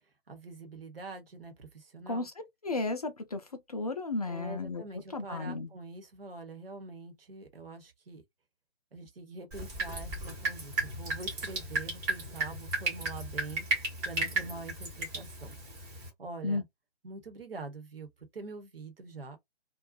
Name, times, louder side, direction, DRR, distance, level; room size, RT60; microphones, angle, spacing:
voice 1, 0.3-2.3 4.3-8.2 8.9-13.6 14.0-15.6 16.0-16.6 17.0-18.1 18.3-19.4, right 3 dB, 60° right, 1.0 m, -44 dB
voice 2, 2.6-5.7 16.4-16.6, left 3 dB, 35° left, 0.4 m, -34 dB
Drip, 9.5-16.1, right 2 dB, 15° right, 1.0 m, -34 dB
2.5 x 2.3 x 2.4 m
figure-of-eight pair, 140°, 32 cm